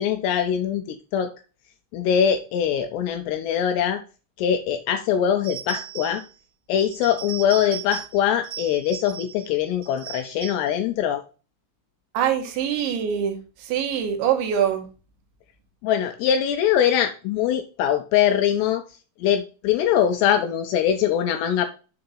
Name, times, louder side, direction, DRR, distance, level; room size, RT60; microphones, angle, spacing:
voice 1, 0.0-1.3 1.9-4.0 4.4-6.2 6.7-11.2 15.8-18.8 19.2-21.7, left 9 dB, 85° left, 6 dB, 2.5 m, -22 dB
sound 1, 5.4-6.3 6.8-8.2 8.4-9.5 9.8-10.7, right 11 dB, 40° right, 3.2 m, -37 dB
voice 2, 12.2-14.9, right 9 dB, 75° right, 5 dB, 3.5 m, -24 dB
7.7 x 4.0 x 5.5 m, 0.33 s
omnidirectional pair, 5.4 m